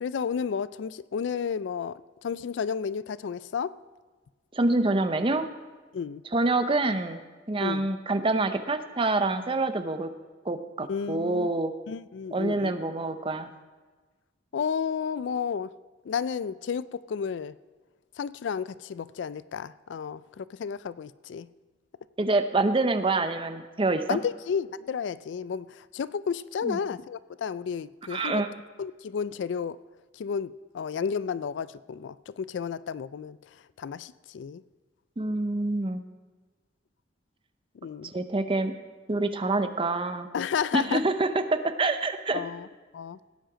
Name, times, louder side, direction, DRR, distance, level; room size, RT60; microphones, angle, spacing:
voice 1, 0.0-3.8 5.9-6.2 7.6-7.9 10.9-11.5 11.9-12.7 14.5-15.7 16.0-17.6 18.2-21.5 24.1-28.4 28.8-29.8 30.1-33.4 33.8-34.6 37.8-38.1 40.3-41.0 42.3-42.7 42.9-43.2, left 6 dB, 75° left, 18 dB, 0.4 m, -32 dB
voice 2, 4.5-5.5 6.3-10.1 10.4-11.7 12.3-13.5 22.2-24.2 26.6-26.8 28.1-28.5 35.2-36.0 38.0-38.7 39.1-40.3 40.7-42.4, right 2 dB, 30° right, 9 dB, 0.7 m, -26 dB
16.5 x 8.9 x 5.0 m, 1.3 s
head